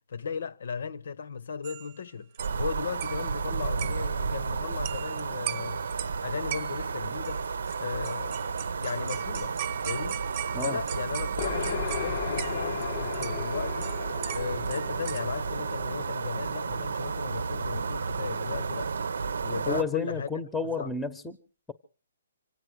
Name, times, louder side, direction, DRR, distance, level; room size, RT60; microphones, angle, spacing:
voice 1, 0.0-2.3 2.6-5.9 6.2-7.5 7.8-8.5 8.8-9.6 9.8-10.2 10.6-13.9 14.3-18.9 19.4-20.3 20.6-20.9, left 6 dB, 70° left, 1.0 m, -36 dB
sound 1, 1.6-2.0 2.3-2.6 2.9-3.4 3.8-4.2 4.8-5.2 5.5-6.2 6.5-6.9 7.2-12.9 13.1-15.3, right 13 dB, 35° right, 0.8 m, -39 dB
sound 2, 2.4-19.8, right 5 dB, 80° right, 0.8 m, -32 dB
sound 3, 11.4-17.0, left 9 dB, 45° left, 0.8 m, -36 dB
voice 2, 19.7-21.4, left 4 dB, 5° left, 0.9 m, -31 dB
26.0 x 8.8 x 6.3 m
hypercardioid pair, 155°, 0 cm